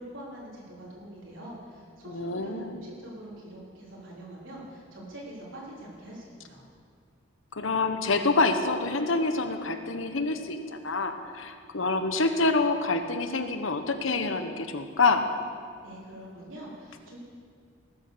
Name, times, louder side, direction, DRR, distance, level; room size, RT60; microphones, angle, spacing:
voice 1, 0.0-6.6 15.8-17.2, right 1 dB, 65° right, -5 dB, 4.0 m, -44 dB
voice 2, 2.1-2.8 7.5-15.2, left 3 dB, 65° left, 7 dB, 1.1 m, -27 dB
19.0 x 9.1 x 6.8 m, 2.2 s
head